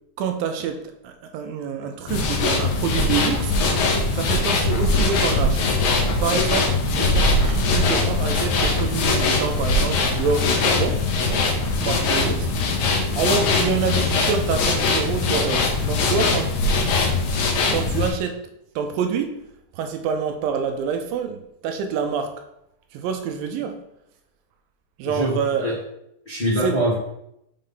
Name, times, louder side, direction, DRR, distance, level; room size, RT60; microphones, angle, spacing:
voice 1, 0.2-3.6 4.1-5.7 6.2-11.0 11.8-12.5 13.1-16.5 17.6-18.4 18.8-19.4 19.7-22.4 22.9-23.8 25.0-25.7 26.6-26.8, right 6 dB, 80° right, 6 dB, 2.1 m, -27 dB
sound 1, 2.1-18.1, left 3 dB, 70° left, 1.9 m, -21 dB
voice 2, 25.0-25.8 26.2-27.0, equal, 30° left, -9 dB, 0.8 m, -24 dB
6.3 x 3.8 x 5.4 m, 0.80 s
omnidirectional pair, 4.5 m